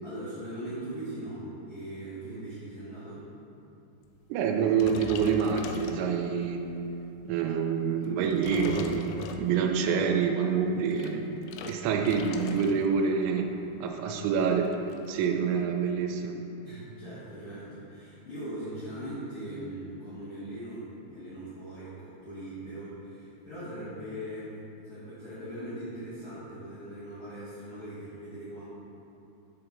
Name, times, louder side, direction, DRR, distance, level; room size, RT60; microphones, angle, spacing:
voice 1, 0.0-3.3 16.6-24.6 24.9-28.7, right 1 dB, 75° left, -12 dB, 1.7 m, -40 dB
voice 2, 4.3-6.6 7.3-11.2 11.7-13.5 13.8-14.7 15.1-16.4, right 6 dB, 85° right, 4 dB, 3.1 m, -27 dB
sound 1, 4.8-6.5 7.0-7.3 8.0-9.8 10.7-13.0 13.2-13.5 13.8-13.9 14.1-15.3, left 6 dB, 90° left, 3.2 m, -41 dB
7.2 x 6.3 x 3.9 m, 2.8 s
omnidirectional pair, 5.8 m